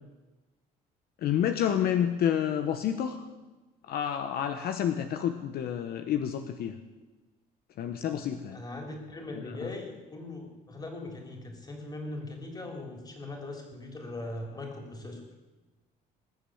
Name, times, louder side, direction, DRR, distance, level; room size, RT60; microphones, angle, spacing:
voice 1, 1.2-3.2 3.9-6.7 7.8-8.6 9.6-9.7, left 9 dB, 65° left, 7 dB, 1.0 m, -29 dB
voice 2, 8.5-15.2, left 2 dB, 25° left, 2 dB, 3.7 m, -40 dB
20.0 x 7.1 x 7.9 m, 1.2 s
cardioid pair, 110°, 17 cm